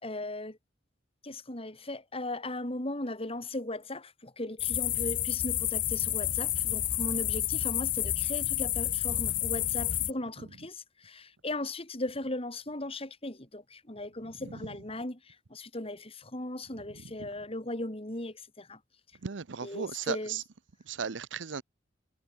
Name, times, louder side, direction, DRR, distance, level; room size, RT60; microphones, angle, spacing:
voice 1, 0.0-0.6 1.2-18.8 19.6-20.4, left 1 dB, 30° left, 3.6 m, -38 dB
sound 1, 4.6-10.1, left 12 dB, 45° left, 0.9 m, -30 dB
voice 2, 19.2-20.4 20.9-21.6, right 6 dB, 85° right, 0.7 m, -36 dB
head